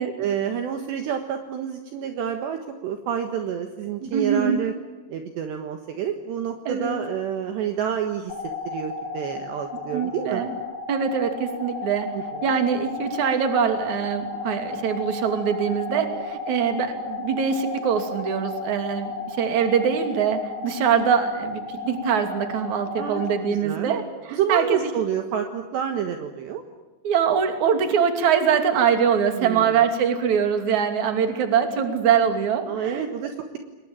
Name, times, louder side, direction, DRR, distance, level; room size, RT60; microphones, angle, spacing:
voice 1, 0.2-4.7 5.1-8.3 8.6-10.5 12.1-12.5 23.0-23.2 23.5-23.9 24.3-26.6 29.4-29.8 32.7-33.6, right 8 dB, 65° right, 6 dB, 3.4 m, -28 dB
voice 2, 4.0-4.6 6.6-7.0 9.9-10.5 10.9-12.1 12.4-24.8 27.0-33.1, right 7 dB, 45° right, 6 dB, 3.5 m, -23 dB
sound 1, 8.3-23.3, left 3 dB, 60° left, 5.8 m, -34 dB
29.0 x 22.0 x 9.0 m, 1.2 s
omnidirectional pair, 5.7 m